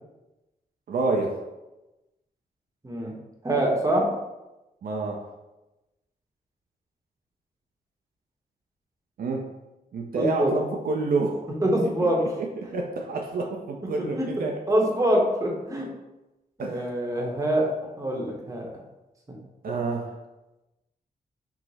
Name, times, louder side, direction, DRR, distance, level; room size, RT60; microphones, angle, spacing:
voice 1, 0.9-1.4 4.8-5.3 9.2-9.5 9.9-11.5 11.8-12.1 12.4-14.6 16.6-16.9 19.6-20.2, right 3 dB, 65° right, 1 dB, 0.5 m, -28 dB
voice 2, 3.4-4.1 10.1-10.5 11.6-12.3 12.6-12.7 14.2-14.3 14.7-15.9 16.6-17.7 18.0-18.7, right 1 dB, 20° right, -1 dB, 0.8 m, -24 dB
4.7 x 2.0 x 4.0 m, 1.0 s
wide cardioid pair, 120°, 16 cm